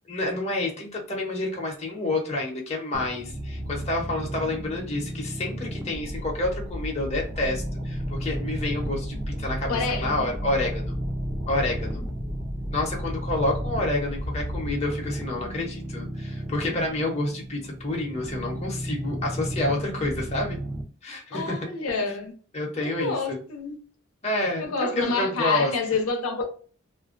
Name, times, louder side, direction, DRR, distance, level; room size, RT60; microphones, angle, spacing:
voice 1, 0.1-10.9 11.5-12.0 12.7-20.6 21.0-21.6 22.5-23.4 24.2-25.7, left 2 dB, 30° left, 0.7 m, -29 dB
sound 1, 2.9-20.8, right 1 dB, 15° right, 0.4 m, -34 dB
sound 2, 5.9-14.7, equal, 85° right, 0.7 m, -35 dB
voice 2, 9.7-10.2 21.3-22.3 22.8-23.8 24.6-26.5, left 4 dB, 85° left, 0.6 m, -28 dB
2.5 x 2.1 x 2.4 m
head